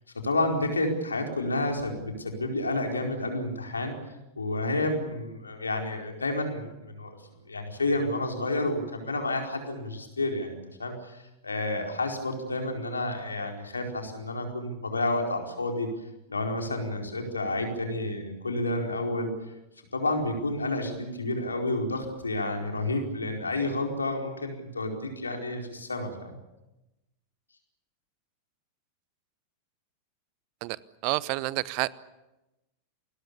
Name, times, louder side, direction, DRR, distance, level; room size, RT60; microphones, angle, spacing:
voice 1, 0.1-4.0 4.3-7.2 7.5-15.9 16.3-19.3 19.9-26.3, left 2 dB, 75° left, 2 dB, 4.6 m, -30 dB
voice 2, 31.0-31.9, right 22 dB, 45° right, 20 dB, 0.8 m, -28 dB
28.5 x 21.0 x 7.1 m, 0.98 s
figure-of-eight pair, 90°, 0 cm